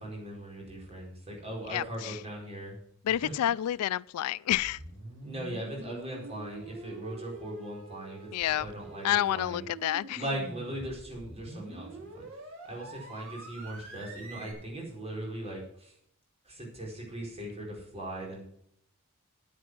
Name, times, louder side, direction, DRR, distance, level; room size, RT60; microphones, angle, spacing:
voice 1, 0.0-2.8 3.2-3.3 5.2-8.3 8.6-9.6 10.1-12.3 12.6-15.9 16.4-18.4, right 1 dB, 30° right, 4.6 m, -39 dB
voice 2, 1.7-2.2 3.0-4.8 8.3-8.7 9.0-10.2, left 12 dB, 80° left, 0.3 m, -29 dB
sound 1, 4.5-14.5, right 2 dB, 60° right, 3.7 m, -46 dB
9.6 x 9.1 x 6.1 m
head